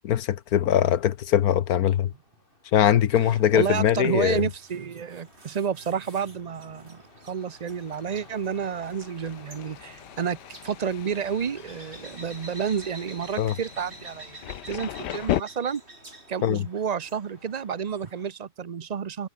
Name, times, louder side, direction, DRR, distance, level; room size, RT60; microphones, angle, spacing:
voice 1, 0.0-2.1 2.7-4.4 13.4-13.5 16.4-16.6, left 10 dB, 65° left, 1.3 m, -21 dB
sound 1, 1.7-18.3, left 1 dB, 30° left, 7.1 m, -54 dB
voice 2, 3.2-10.4 10.6-14.4 14.7-15.8 16.3-19.3, right 7 dB, 70° right, 0.3 m, -30 dB
sound 2, 3.4-18.3, right 2 dB, 40° right, 5.1 m, -50 dB
Thunder, 7.3-15.4, left 13 dB, 85° left, 1.3 m, -37 dB
omnidirectional pair, 1.8 m